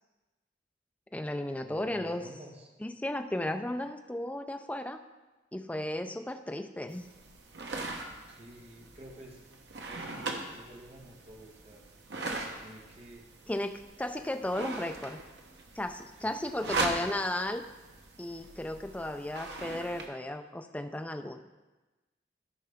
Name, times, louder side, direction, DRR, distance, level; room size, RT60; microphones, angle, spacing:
voice 1, 1.1-2.2 2.8-5.0 5.5-7.1 13.5-15.2 15.7-17.6 18.2-21.5, left 1 dB, 10° left, 6 dB, 0.4 m, -35 dB
voice 2, 1.6-2.7 8.2-9.4 9.8-11.8 12.1-13.2 16.2-16.9, right 1 dB, 35° right, -1 dB, 1.5 m, -51 dB
sound 1, 6.9-20.1, right 3 dB, 65° right, 1.1 m, -40 dB
14.0 x 5.5 x 3.6 m, 1.2 s
head